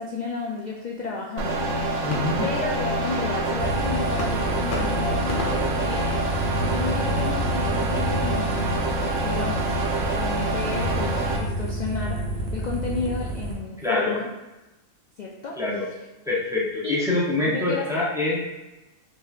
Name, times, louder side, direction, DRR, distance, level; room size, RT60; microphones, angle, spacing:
voice 1, 0.0-2.1 2.4-6.2 6.6-14.3 15.2-15.6 16.8-17.0 17.5-17.9, left 4 dB, 90° left, -2 dB, 0.4 m, -32 dB
sound 1, 1.4-11.4, right 1 dB, 75° right, 1.0 m, -26 dB
voice 2, 2.0-2.5 13.8-14.2 15.6-15.8 16.2-18.4, left 2 dB, 5° right, -6 dB, 0.4 m, -25 dB
sound 2, 2.1-8.3 8.7-9.4 9.7-10.3, left 2 dB, 50° left, 0.7 m, -38 dB
sound 3, 3.6-13.5, right 1 dB, 50° right, 0.9 m, -29 dB
5.3 x 2.9 x 2.4 m, 1.1 s
omnidirectional pair, 1.4 m